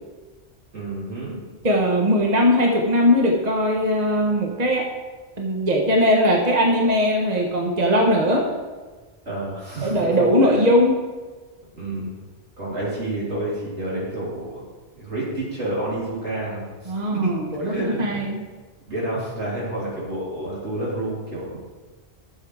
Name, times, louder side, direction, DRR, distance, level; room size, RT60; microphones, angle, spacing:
voice 1, 0.7-1.4 9.3-10.6 11.7-12.2 12.6-14.7 14.9-18.2 18.9-21.6, right 1 dB, 90° right, -7 dB, 3.9 m, -29 dB
voice 2, 1.6-4.8 5.4-8.4 9.8-11.0 16.9-18.4, equal, 40° right, 0 dB, 1.4 m, -19 dB
12.5 x 7.1 x 4.9 m, 1.3 s
omnidirectional pair, 1.1 m